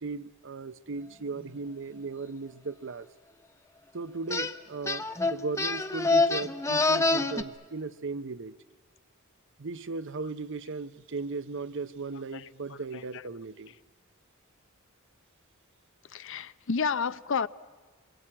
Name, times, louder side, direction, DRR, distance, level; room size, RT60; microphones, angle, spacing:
voice 1, 0.0-3.1 3.9-8.5 9.6-13.7, right 4 dB, 60° right, 0.8 m, -37 dB
sound 1, 4.3-4.5 4.9-7.4, left 3 dB, 15° left, 0.8 m, -26 dB
voice 2, 12.3-13.2 16.1-17.5, left 5 dB, 60° left, 0.7 m, -32 dB
26.5 x 22.5 x 8.8 m
head